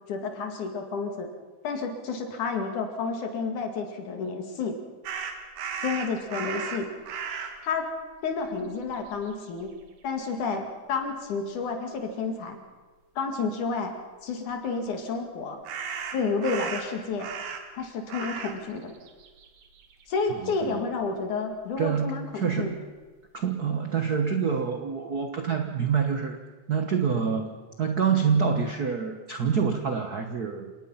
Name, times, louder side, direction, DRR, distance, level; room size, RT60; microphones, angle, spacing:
voice 1, 0.1-1.3 1.6-4.8 5.8-6.9 7.6-7.9 8.2-9.7 10.0-12.6 13.2-13.9 14.2-15.6 16.1-17.3 17.7-18.9 20.1-22.7, left 4 dB, 70° left, 4 dB, 3.6 m, -30 dB
sound 1, 5.1-7.6 8.4-8.6 8.9-9.8 15.7-17.8 18.1-18.6 18.9-20.5, right 6 dB, 85° right, 3.3 m, -35 dB
voice 2, 20.4-20.8 21.8-22.8 23.3-26.4 26.7-30.7, right 6 dB, 65° right, 6 dB, 0.9 m, -27 dB
28.0 x 18.5 x 5.6 m, 1.3 s
omnidirectional pair, 3.6 m